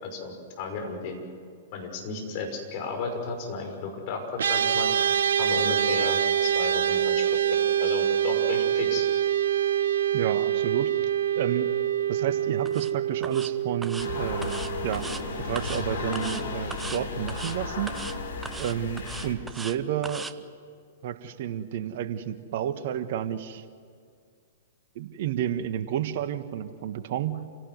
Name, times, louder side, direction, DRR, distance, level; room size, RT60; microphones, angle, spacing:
voice 1, 0.0-1.2 1.7-4.9 5.4-7.3 7.5-9.1, left 4 dB, 45° left, 3 dB, 6.0 m, -34 dB
sound 1, 4.4-15.8, right 9 dB, 70° right, 0.8 m, -26 dB
voice 2, 10.1-10.9 11.3-11.7 12.1-15.0 15.4-17.9 18.6-20.3 21.0-23.6 24.9-27.4, right 10 dB, 55° right, 10 dB, 1.6 m, -31 dB
sound 2, 12.7-12.9 13.2-13.5 13.8-14.1 14.4-15.2 15.6-15.8 16.1-16.4 16.7-17.0 17.3-17.6 17.9-18.2 18.4-19.8 20.0-20.3, right 3 dB, 10° right, 1.1 m, -38 dB
sound 3, 14.0-19.3, left 3 dB, 70° left, 4.0 m, -34 dB
28.0 x 17.5 x 9.5 m, 2.2 s
figure-of-eight pair, 110°, 0 cm